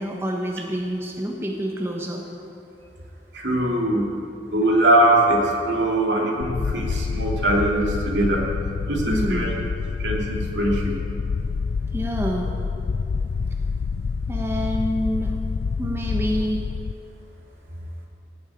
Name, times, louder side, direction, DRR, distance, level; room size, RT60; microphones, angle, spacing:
voice 1, 0.0-2.3 9.1-9.6 11.9-12.5 14.3-15.4 15.8-16.7, equal, 15° right, 0 dB, 1.1 m, -27 dB
voice 2, 3.3-4.1 4.5-8.4 8.9-9.5 10.0-10.9, right 1 dB, 75° right, -1 dB, 2.6 m, -21 dB
sound 1, 6.4-16.9, left 5 dB, 60° left, 0.3 m, -27 dB
16.0 x 7.2 x 9.0 m, 2.6 s
head